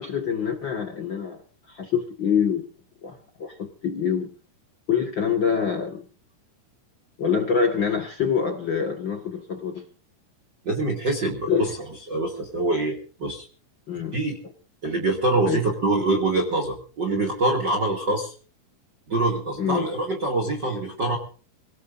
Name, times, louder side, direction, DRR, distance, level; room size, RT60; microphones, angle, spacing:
voice 1, 0.0-1.4 1.7-2.6 3.0-4.3 4.9-6.0 7.2-9.8 11.5-11.6 13.9-14.2 15.4-15.6 19.6-19.9, left 7 dB, 75° left, 5 dB, 1.0 m, -25 dB
voice 2, 10.6-11.7 12.1-13.4 14.1-14.4 14.8-18.3 19.1-21.2, right 2 dB, 35° right, 3 dB, 2.4 m, -25 dB
25.5 x 18.0 x 2.6 m, 0.38 s
omnidirectional pair, 4.6 m